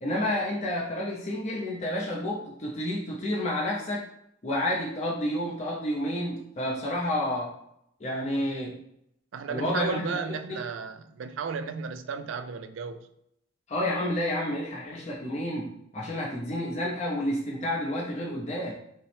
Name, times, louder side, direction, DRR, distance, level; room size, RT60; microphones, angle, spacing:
voice 1, 0.0-4.0 4.4-7.5 8.0-8.8 9.5-10.6 13.7-18.7, left 1 dB, 35° left, -3 dB, 0.6 m, -30 dB
voice 2, 9.3-13.1, right 5 dB, 70° right, 10 dB, 0.3 m, -34 dB
5.3 x 2.0 x 3.2 m, 0.76 s
head